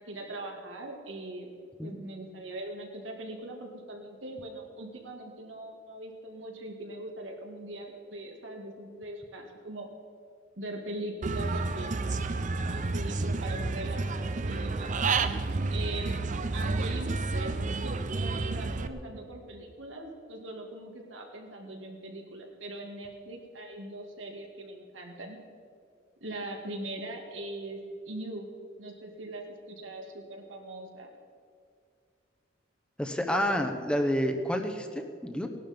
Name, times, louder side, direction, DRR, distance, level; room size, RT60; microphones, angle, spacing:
voice 1, 0.0-1.5 1.8-9.9 10.6-12.0 12.7-15.0 15.7-16.3 16.5-25.4 26.2-28.5 28.8-31.1, right 1 dB, 85° right, 1 dB, 2.3 m, -41 dB
Human voice / Bird, 11.2-18.9, right 3 dB, 40° right, 0.6 m, -30 dB
voice 2, 33.0-35.5, equal, 5° left, 4 dB, 1.0 m, -29 dB
18.0 x 11.5 x 5.3 m, 2.3 s
head